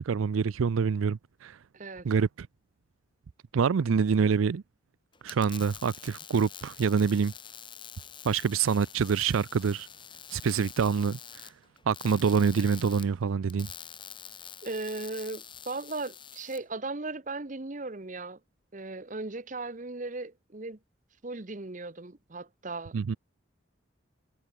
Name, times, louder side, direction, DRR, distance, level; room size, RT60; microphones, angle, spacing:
voice 1, 0.0-1.6 2.0-2.5 3.5-4.6 5.2-7.3 8.2-9.9 10.3-11.2 11.9-13.7 22.9-23.2, right 6 dB, 85° right, 0.4 m, -26 dB
voice 2, 1.7-2.1 14.6-18.4 18.7-20.8 21.2-22.9, right 3 dB, 40° right, 1.0 m, -37 dB
sound 1, 5.1-16.6, left 8 dB, 25° left, 3.5 m, -46 dB
head